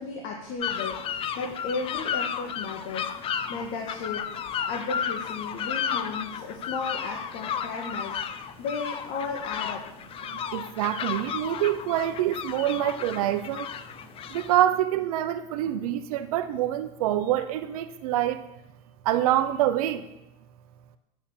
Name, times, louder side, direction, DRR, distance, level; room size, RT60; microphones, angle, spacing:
voice 1, 0.0-4.3 4.7-10.0, left 4 dB, 55° left, 1 dB, 1.8 m, -35 dB
sound 1, 0.6-14.6, left 8 dB, 30° left, 0.6 m, -33 dB
voice 2, 10.5-13.7 14.3-18.4 19.0-20.0, right 12 dB, 85° right, 9 dB, 0.9 m, -26 dB
9.1 x 7.4 x 7.3 m, 0.89 s
supercardioid pair, 135°, 18 cm